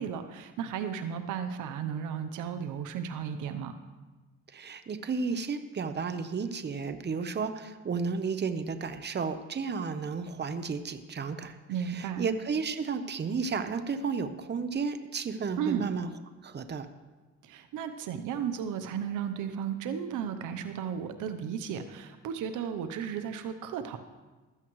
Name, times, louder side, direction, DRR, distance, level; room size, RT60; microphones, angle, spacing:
voice 1, 0.0-3.7 11.7-12.2 15.6-15.9 17.4-24.0, right 8 dB, 85° right, 9 dB, 0.9 m, -34 dB
voice 2, 4.5-16.1 16.4-16.9, right 5 dB, 35° right, 9 dB, 0.9 m, -33 dB
15.0 x 13.0 x 3.2 m, 1.3 s
cardioid pair, 90°, 30 cm